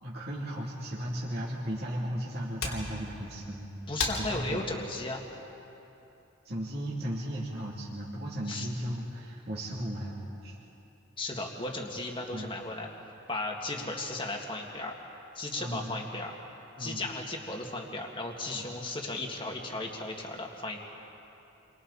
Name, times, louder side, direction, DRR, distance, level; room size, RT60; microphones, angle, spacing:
voice 1, 0.0-3.7 4.2-4.6 6.4-10.6 12.3-12.5 13.7-13.9 15.6-16.0 16.8-17.0 18.5-18.7, equal, 50° right, -7 dB, 2.9 m, -36 dB
sound 1, 2.4-6.5, left 3 dB, 85° left, 3.4 m, -40 dB
voice 2, 3.9-5.2 8.5-8.7 11.2-12.9 13.3-14.9 15.4-16.3 16.8-20.8, left 2 dB, 25° left, 1 dB, 2.0 m, -35 dB
30.0 x 24.5 x 4.2 m, 2.9 s
head